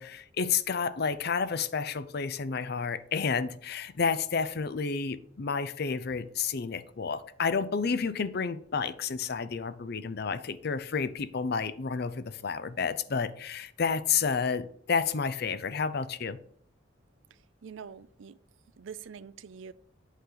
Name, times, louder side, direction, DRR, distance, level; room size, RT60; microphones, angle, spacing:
voice 1, 0.0-16.4, left 5 dB, 55° left, 0.6 m, -30 dB
voice 2, 17.3-18.4 18.8-19.7, right 6 dB, 85° right, 0.5 m, -45 dB
8.3 x 4.0 x 6.4 m
head